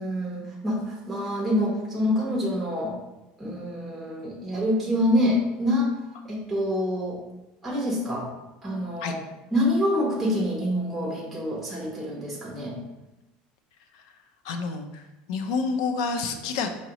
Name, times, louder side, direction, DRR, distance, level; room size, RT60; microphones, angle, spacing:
voice 1, 0.0-2.9 3.4-5.9 6.2-7.2 7.6-8.3 8.6-9.2 9.5-12.8, left 1 dB, ahead, -4 dB, 0.7 m, -26 dB
voice 2, 14.4-15.0 15.3-16.7, left 4 dB, 90° left, 6 dB, 0.4 m, -28 dB
4.8 x 2.9 x 2.9 m, 1.0 s
cardioid pair, 175°, 3 cm